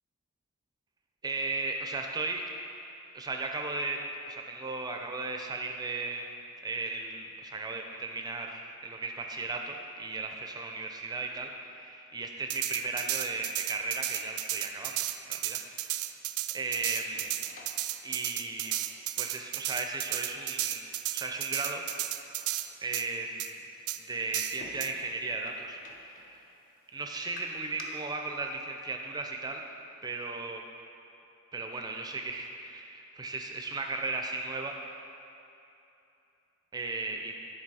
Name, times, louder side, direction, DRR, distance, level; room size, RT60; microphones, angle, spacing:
voice 1, 1.2-2.4 3.1-6.4 6.6-15.6 16.5-17.3 18.0-18.8 19.2-20.8 21.1-21.8 22.8-23.6 24.0-26.4 26.9-29.6 30.0-30.6 31.5-34.8 36.7-37.3, right 3 dB, 20° right, 2 dB, 0.5 m, -36 dB
sound 1, 12.5-22.7 22.9-23.0 23.4-23.5 23.9-24.0 24.3-24.9, right 15 dB, 75° right, 0.3 m, -33 dB
sound 2, 16.4-27.8, left 2 dB, 40° left, 0.6 m, -56 dB
9.9 x 3.9 x 4.8 m, 2.8 s
head